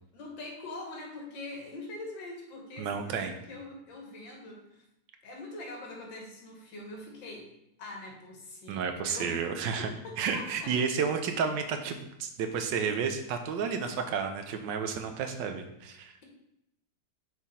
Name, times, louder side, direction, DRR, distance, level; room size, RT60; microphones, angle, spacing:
voice 1, 0.1-4.8 5.2-7.5 7.8-9.4 9.8-10.8, left 2 dB, 85° left, 0 dB, 2.0 m, -43 dB
voice 2, 2.8-3.4 8.7-9.9 10.2-16.2, right 6 dB, 80° right, 7 dB, 1.3 m, -31 dB
6.3 x 3.7 x 4.1 m, 0.83 s
omnidirectional pair, 2.0 m